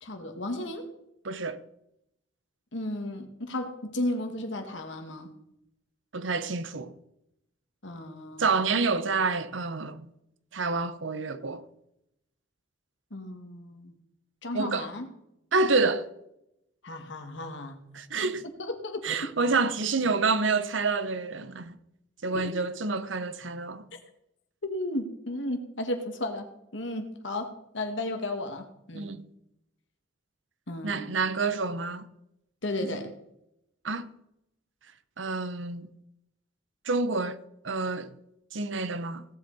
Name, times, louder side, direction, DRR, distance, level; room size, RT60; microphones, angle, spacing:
voice 1, 0.0-0.9 2.7-5.3 7.8-8.5 13.1-14.0 14.4-15.1 16.8-17.8 18.2-18.3 18.6-19.3 22.3-22.5 23.9-24.0 24.6-26.5 26.7-29.1 30.7-31.1 32.6-33.1, left 1 dB, 70° left, 1.9 m, -34 dB
voice 2, 1.2-1.6 6.1-6.9 8.4-10.1 10.5-11.6 14.5-14.9 15.5-16.1 17.9-18.4 19.0-21.8 22.2-23.8 28.9-29.3 30.8-32.1 32.8-33.0 33.8-34.1 35.2-35.9 36.8-37.4 37.6-38.1 38.5-39.2, right 4 dB, 75° right, 0.9 m, -28 dB
17.0 x 8.1 x 4.2 m
head